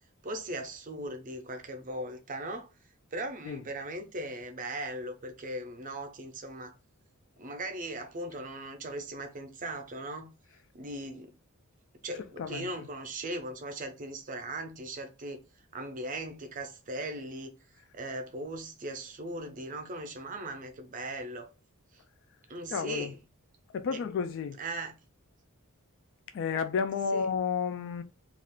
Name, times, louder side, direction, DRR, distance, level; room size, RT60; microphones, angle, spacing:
voice 1, 0.2-2.7 3.1-6.7 7.4-10.3 10.7-11.3 12.0-15.4 15.7-17.5 17.9-21.5 22.5-23.2 23.9-24.0 24.5-24.9 27.0-27.3, right 1 dB, 35° right, 0.5 m, -38 dB
voice 2, 12.4-12.7 22.7-23.1 23.7-24.6 26.3-28.0, left 6 dB, 60° left, 0.3 m, -31 dB
2.4 x 2.4 x 3.5 m
head